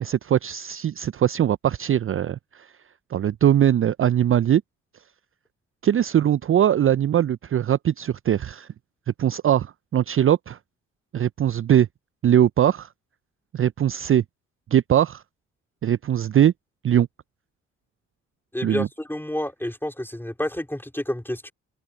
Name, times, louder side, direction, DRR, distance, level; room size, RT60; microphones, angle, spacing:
voice 1, 0.0-2.7 3.1-4.6 5.8-8.7 9.2-10.6 11.1-11.9 12.2-12.9 13.5-14.2 14.7-15.2 15.8-16.5 16.8-17.1 18.6-18.9, right 10 dB, 35° right, 0.5 m, -21 dB
voice 2, 18.5-21.5, left 1 dB, 5° left, 3.8 m, -29 dB
open air
hypercardioid pair, 45°, 36 cm